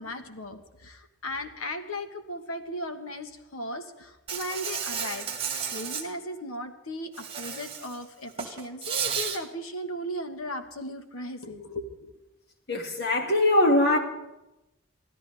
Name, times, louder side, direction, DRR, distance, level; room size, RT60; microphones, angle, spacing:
voice 1, 0.0-5.2 5.7-12.2, left 1 dB, 80° left, 1.5 m, -37 dB
Insect, 4.3-6.0 7.1-8.0 8.3-9.4, right 7 dB, 25° right, 1.9 m, -32 dB
voice 2, 12.7-14.0, left 1 dB, 50° left, 2.2 m, -22 dB
25.0 x 15.5 x 3.5 m
head